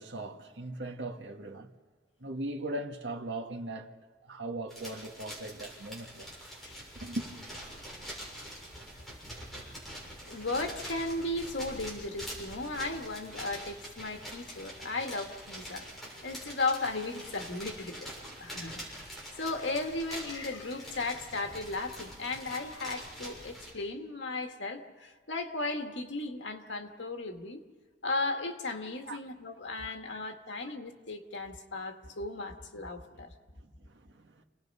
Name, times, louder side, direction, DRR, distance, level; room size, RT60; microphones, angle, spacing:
voice 1, 0.0-1.7 2.2-3.9 4.2-6.3 7.0-7.3 29.1-29.2 30.1-30.2 30.6-30.7 33.0-33.2 33.5-34.4, right 2 dB, 80° right, 1.7 m, -39 dB
sound 1, 4.7-23.7, equal, ahead, 6.8 m, -45 dB
voice 2, 6.6-7.0 9.6-9.7 10.2-15.9 16.2-27.6 28.0-33.3, left 2 dB, 85° left, 1.9 m, -36 dB
29.0 x 19.0 x 5.6 m
head